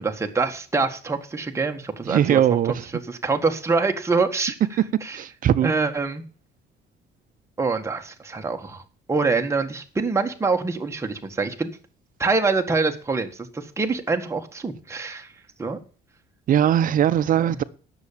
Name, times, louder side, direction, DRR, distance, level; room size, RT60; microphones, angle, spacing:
voice 1, 0.0-2.4 3.2-4.5 5.1-5.2 5.6-6.2 7.6-8.8 9.1-11.7 12.2-15.3 15.6-15.8, right 4 dB, 15° right, 1.6 m, -25 dB
voice 2, 2.0-2.9 5.1-5.7 16.5-17.6, right 10 dB, 55° right, 0.8 m, -20 dB
9.5 x 7.0 x 8.5 m
cardioid pair, 110°, 17 cm